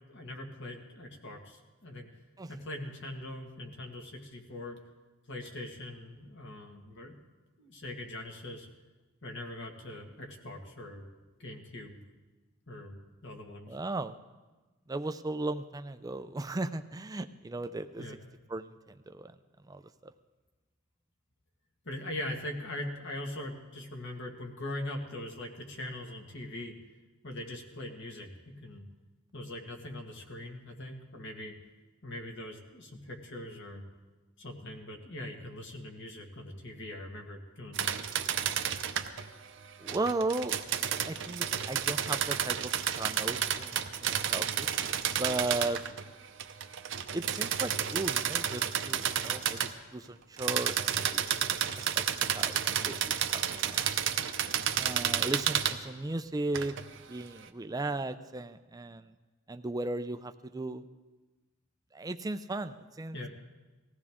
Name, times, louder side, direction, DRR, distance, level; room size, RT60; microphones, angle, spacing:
voice 1, 0.1-2.1 2.5-4.8 5.3-7.1 7.6-8.7 9.2-11.1 11.4-12.0 12.7-13.8 18.0-18.2 21.9-26.8 27.2-28.9 29.3-31.5 32.0-33.8 34.4-38.0 63.1-63.3, left 1 dB, 60° left, 2 dB, 1.8 m, -41 dB
voice 2, 13.7-14.2 14.9-18.0 18.5-19.3 19.7-20.1 39.8-40.5 41.0-44.7 45.1-45.8 47.1-51.2 51.7-53.9 54.8-56.8 57.1-59.1 59.5-60.9 61.9-63.2, right 2 dB, 20° right, 10 dB, 0.4 m, -36 dB
sound 1, 37.7-39.3 39.9-46.1 46.4-49.7 50.4-55.8 56.5-56.9, right 9 dB, 60° right, 0.7 m, -31 dB
19.5 x 15.0 x 3.6 m, 1.2 s
head